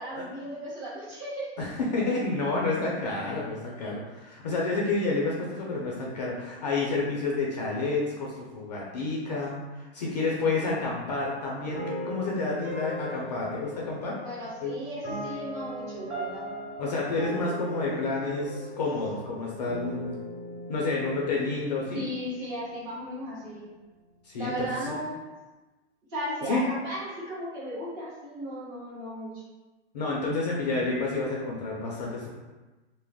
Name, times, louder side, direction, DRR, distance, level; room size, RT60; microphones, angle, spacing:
voice 1, 0.0-1.5 14.2-16.5 21.9-23.7 24.4-25.2 26.1-29.4, equal, 25° right, -8 dB, 0.9 m, -35 dB
voice 2, 1.6-14.2 14.6-14.8 16.8-20.2 20.7-22.1 24.2-25.0 26.5-26.6 29.9-32.3, left 3 dB, 40° left, -4 dB, 0.4 m, -29 dB
sound 1, 11.7-22.8, equal, 60° right, 1.3 m, -38 dB
2.3 x 2.1 x 3.4 m, 1.2 s
hypercardioid pair, 160°, 34 cm